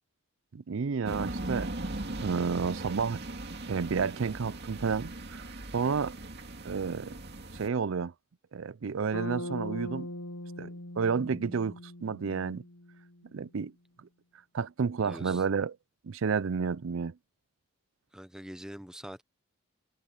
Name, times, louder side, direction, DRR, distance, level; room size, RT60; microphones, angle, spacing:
voice 1, 0.5-1.7 2.2-3.2 3.7-5.4 5.7-6.1 6.6-7.1 7.5-8.1 8.5-10.1 10.6-12.6 13.3-13.7 14.5-15.8 16.0-17.1, right 5 dB, 65° right, 0.5 m, -31 dB
sound 1, 1.0-7.7, right 2 dB, 50° right, 2.5 m, -39 dB
Bass guitar, 9.1-13.2, left 1 dB, 85° left, 1.1 m, -41 dB
voice 2, 15.0-15.4 18.1-19.2, equal, 5° right, 0.8 m, -44 dB
head